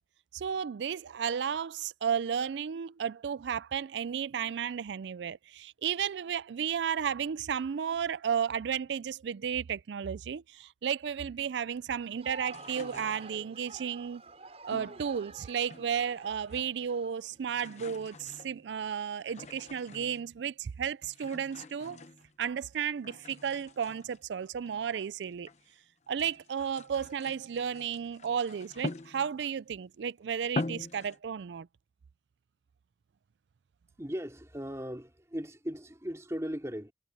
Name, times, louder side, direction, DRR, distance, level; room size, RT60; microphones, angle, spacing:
voice 1, 0.3-14.2 14.6-22.0 22.4-25.5 26.1-31.7, right 7 dB, 75° right, 0.4 m, -33 dB
Crowd, 12.0-17.8, right 3 dB, 35° right, 7.0 m, -49 dB
sound 1, 12.4-13.7 14.7-16.1 16.4-17.0 17.3-20.4 21.0-22.6 23.0-25.7 26.0-29.6 30.0-30.1 30.4-31.2, left 2 dB, 40° left, 0.9 m, -44 dB
voice 2, 34.0-36.9, equal, 15° right, 3.0 m, -38 dB
head